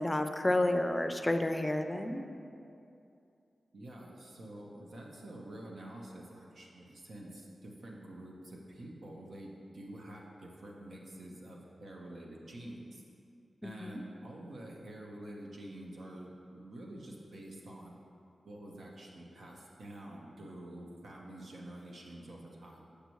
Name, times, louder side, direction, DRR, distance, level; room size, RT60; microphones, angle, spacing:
voice 1, 0.0-2.2 13.6-14.0, left 1 dB, 20° left, 7 dB, 0.5 m, -30 dB
voice 2, 3.7-13.0 13.6-18.0 18.5-23.0, right 1 dB, 75° right, -2 dB, 1.0 m, -48 dB
6.7 x 6.7 x 3.1 m, 2.6 s
cardioid pair, 45°, 0 cm